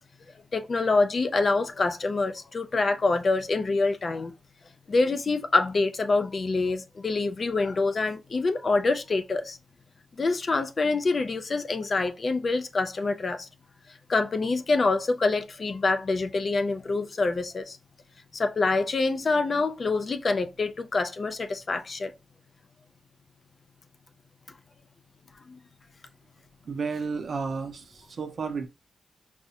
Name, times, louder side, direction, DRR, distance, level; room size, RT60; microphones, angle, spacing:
voice 1, 0.5-4.3 4.9-9.6 10.2-13.5 13.9-17.8 18.3-22.1 25.5-25.6, left 3 dB, 40° left, 0.3 m, -26 dB
voice 2, 26.7-28.7, right 5 dB, 55° right, 0.6 m, -32 dB
4.6 x 2.0 x 2.7 m
wide cardioid pair, 130°, 0 cm